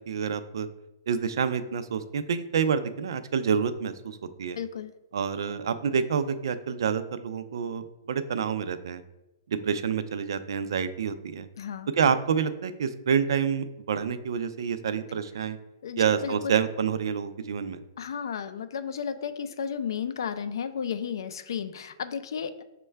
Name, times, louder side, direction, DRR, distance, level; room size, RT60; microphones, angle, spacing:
voice 1, 0.1-0.7 1.1-4.6 5.1-9.0 9.5-11.5 11.9-15.6 16.0-17.8, right 7 dB, 75° right, 11 dB, 0.3 m, -28 dB
voice 2, 4.6-4.9 11.6-11.9 15.8-16.3 18.0-22.6, left 7 dB, 70° left, 12 dB, 0.4 m, -33 dB
6.2 x 2.2 x 3.3 m, 0.96 s
hypercardioid pair, 170°, 2 cm